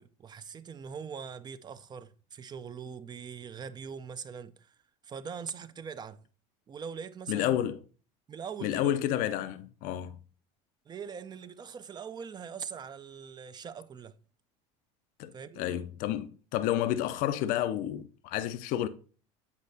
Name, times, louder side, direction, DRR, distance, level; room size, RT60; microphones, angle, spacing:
voice 1, 0.0-4.7 5.0-6.3 6.7-7.7 8.3-8.9 10.9-14.1 15.3-15.7, right 6 dB, 25° right, 0.5 m, -42 dB
voice 2, 7.3-7.8 8.6-10.2 15.2-18.9, left 12 dB, 60° left, 0.5 m, -30 dB
8.2 x 5.2 x 2.7 m
supercardioid pair, 105°, 16 cm